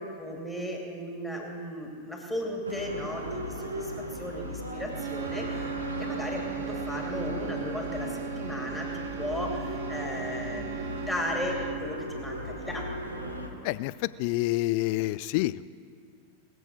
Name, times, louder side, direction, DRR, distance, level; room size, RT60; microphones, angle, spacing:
voice 1, 0.0-5.7 6.0-12.9, left 1 dB, 5° left, -1 dB, 2.9 m, -36 dB
sound 1, 2.6-13.5, equal, 80° right, 1.5 m, -36 dB
sound 2, 4.9-12.0, right 10 dB, 50° right, 0.6 m, -38 dB
voice 2, 14.2-15.7, left 18 dB, 45° left, 18 dB, 0.4 m, -27 dB
20.5 x 7.9 x 6.4 m, 2.4 s
figure-of-eight pair, 90°, 0 cm